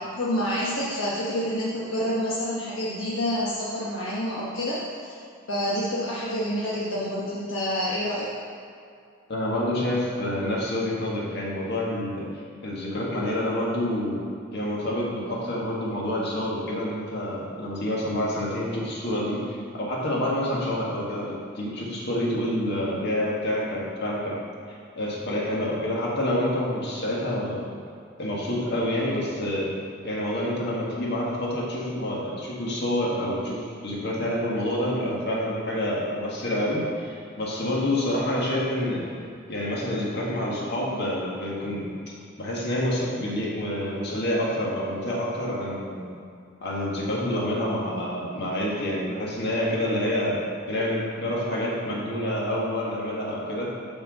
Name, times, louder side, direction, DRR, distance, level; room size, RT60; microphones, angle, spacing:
voice 1, 0.1-5.1 5.5-8.3 34.6-34.7 38.1-38.3, equal, 75° left, -7 dB, 1.1 m, -28 dB
voice 2, 9.3-12.2 12.6-14.2 14.5-24.3 24.7-27.6 28.2-29.7 30.0-39.1 39.5-41.8 42.4-46.2 46.6-50.4 50.7-53.7, left 1 dB, 55° left, -5 dB, 1.7 m, -28 dB
6.9 x 4.5 x 6.3 m, 2.4 s
head